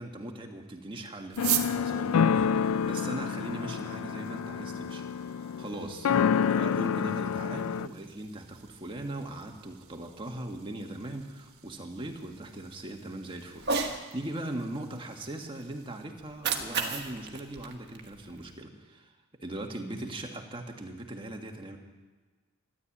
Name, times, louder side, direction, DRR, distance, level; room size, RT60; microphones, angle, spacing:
voice 1, 0.0-19.1 19.4-21.8, right 1 dB, 25° right, 2 dB, 1.7 m, -40 dB
sound 1, 1.3-16.0, right 12 dB, 75° right, 1.4 m, -42 dB
sound 2, 1.4-7.9, left 7 dB, 75° left, 0.4 m, -28 dB
Cat, 13.6-14.0 16.2-18.6, right 4 dB, 50° right, 1.5 m, -33 dB
13.5 x 11.5 x 8.7 m, 1.3 s
head